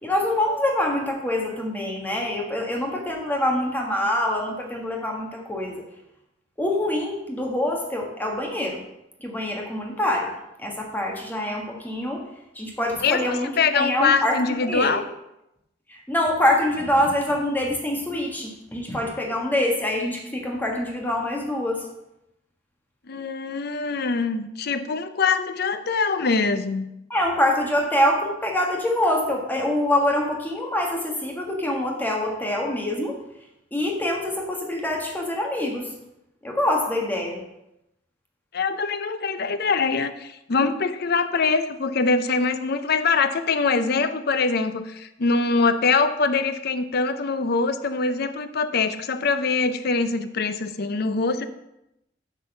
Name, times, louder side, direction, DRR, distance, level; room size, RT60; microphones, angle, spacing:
voice 1, 0.0-5.8 6.6-8.8 9.2-10.3 10.6-12.2 12.5-15.0 15.9-21.8 27.1-33.2 33.7-35.9 36.4-37.4, left 1 dB, 10° left, 0 dB, 1.4 m, -25 dB
voice 2, 13.0-15.0 23.1-26.9 38.5-51.5, left 4 dB, 55° left, 11 dB, 0.6 m, -23 dB
8.2 x 4.1 x 6.5 m, 0.86 s
head